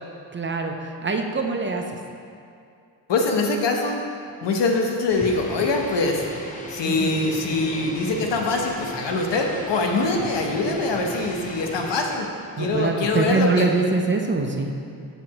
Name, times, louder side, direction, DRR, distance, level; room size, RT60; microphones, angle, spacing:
voice 1, 0.3-2.0 6.8-7.2 12.6-14.7, right 3 dB, 30° right, 3 dB, 0.5 m, -24 dB
voice 2, 3.1-4.0 4.4-6.3 6.7-12.3 12.6-13.7, left 3 dB, 85° left, 2 dB, 0.9 m, -23 dB
sound 1, 5.1-12.2, equal, 20° left, 0.7 m, -35 dB
7.2 x 6.8 x 2.9 m, 2.4 s
wide cardioid pair, 110°, 42 cm